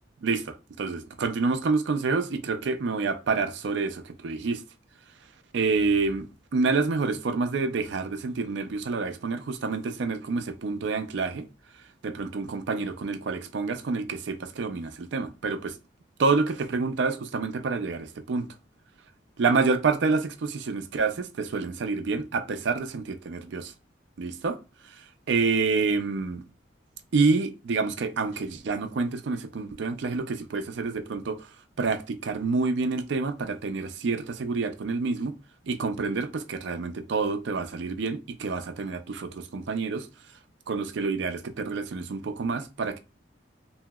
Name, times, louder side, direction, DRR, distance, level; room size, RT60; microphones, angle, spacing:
voice 1, 0.2-4.6 5.5-11.5 12.0-15.8 16.2-18.5 19.4-23.7 24.2-24.6 24.9-26.4 27.1-31.5 31.8-35.3 35.7-40.1 40.7-43.0, right 4 dB, 70° right, 0.4 m, -28 dB
2.8 x 2.7 x 2.3 m
head